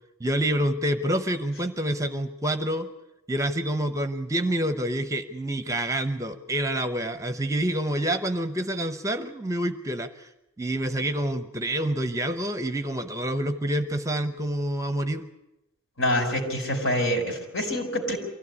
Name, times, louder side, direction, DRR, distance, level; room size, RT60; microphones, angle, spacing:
voice 1, 0.2-2.9 3.3-10.3 10.6-15.3, right 1 dB, 15° right, 10 dB, 0.9 m, -27 dB
voice 2, 16.0-18.2, equal, 65° left, 5 dB, 4.9 m, -26 dB
24.0 x 15.5 x 9.7 m, 0.92 s
head